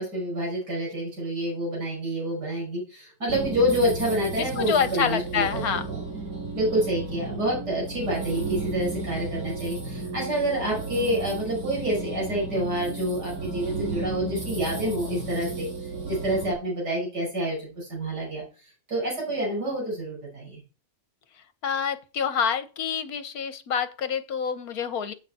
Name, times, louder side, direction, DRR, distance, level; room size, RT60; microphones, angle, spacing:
voice 1, 0.0-6.0 6.5-15.7 16.1-18.4 18.9-20.6, right 1 dB, 85° right, -2 dB, 6.1 m, -28 dB
sound 1, 3.3-16.5, right 3 dB, 55° right, 3.5 m, -33 dB
voice 2, 4.4-5.9 21.6-25.1, left 7 dB, 65° left, 11 dB, 1.6 m, -27 dB
8.8 x 8.4 x 4.3 m, 0.31 s
omnidirectional pair, 1.7 m